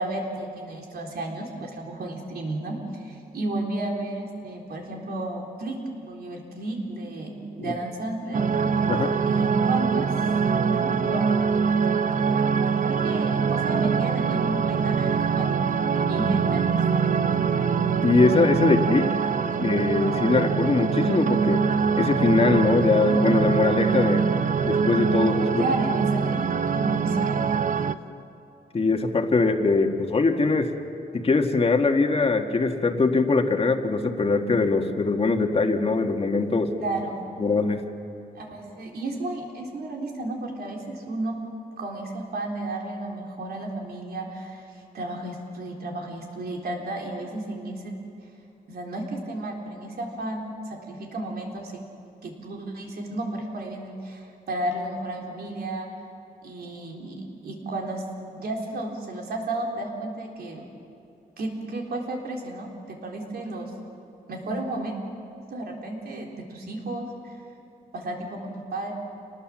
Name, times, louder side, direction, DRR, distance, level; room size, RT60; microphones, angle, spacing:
voice 1, 0.0-5.8 6.0-8.4 9.2-10.1 10.5-11.5 12.8-17.1 25.6-27.7 36.8-37.2 38.4-41.4 41.8-44.6 44.9-48.0 48.7-51.7 52.2-55.9 56.4-58.0 58.3-60.6 61.4-63.7 64.3-65.0 65.5-67.4 67.9-68.9, right 2 dB, 80° right, 0 dB, 3.8 m, -33 dB
sound 1, 8.3-27.9, right 6 dB, 55° right, 0.7 m, -23 dB
voice 2, 18.0-19.2 19.6-21.6 22.0-24.2 24.6-25.6 28.7-30.7 31.1-36.7 37.4-37.8, left 3 dB, 35° left, 4 dB, 1.7 m, -22 dB
28.0 x 19.5 x 7.4 m, 2.6 s
wide cardioid pair, 135°, 16 cm